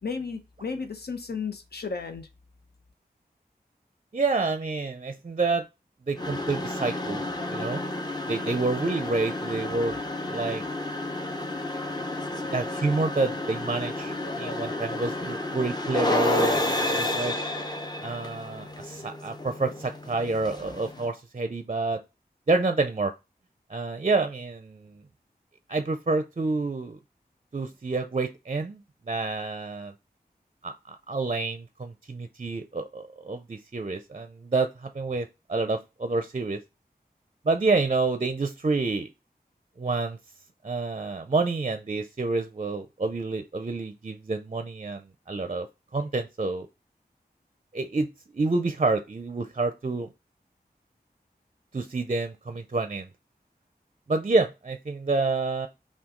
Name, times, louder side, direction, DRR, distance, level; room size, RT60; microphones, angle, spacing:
voice 1, 0.0-2.3, left 5 dB, 75° left, 6 dB, 0.8 m, -33 dB
voice 2, 4.1-5.7 6.1-7.2 7.5-7.8 8.3-10.6 12.5-17.4 18.0-22.0 22.5-23.1 23.7-24.9 25.7-27.0 27.5-28.8 29.1-29.9 30.6-36.6 37.4-39.1 39.8-40.2 40.6-45.7 45.9-46.7 47.7-48.1 48.3-50.1 51.7-53.1 54.1-55.7, right 3 dB, 40° right, 7 dB, 0.5 m, -28 dB
sound 1, 6.2-21.1, left 1 dB, 25° left, 0.8 m, -31 dB
5.8 x 2.3 x 3.7 m, 0.25 s
wide cardioid pair, 60°, 17 cm